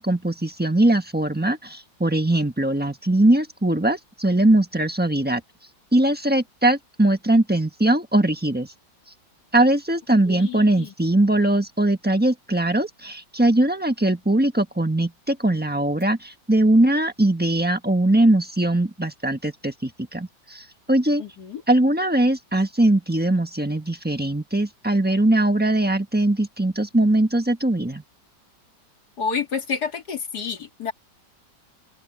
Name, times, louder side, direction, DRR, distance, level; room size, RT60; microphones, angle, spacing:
voice 1, 0.0-5.4 5.9-8.7 9.5-21.2 21.7-28.0, right 1 dB, 5° right, 1.1 m, -21 dB
voice 2, 10.3-10.9 21.2-21.6 29.2-30.9, left 6 dB, 65° left, 2.8 m, -29 dB
omnidirectional pair, 1.9 m